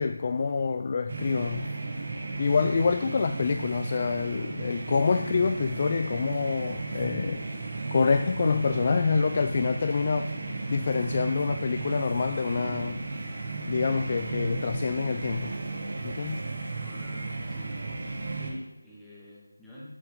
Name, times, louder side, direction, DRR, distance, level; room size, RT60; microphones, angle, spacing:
voice 1, 0.0-1.7 2.4-7.4 7.9-10.3 10.7-13.0 13.7-15.5 16.0-16.4, left 5 dB, 35° left, 0.3 m, -27 dB
sound 1, 1.1-18.5, right 3 dB, 45° right, 1.5 m, -34 dB
voice 2, 16.8-17.7 18.1-20.0, equal, ahead, 2.0 m, -46 dB
11.0 x 7.6 x 3.9 m
figure-of-eight pair, 165°, 0 cm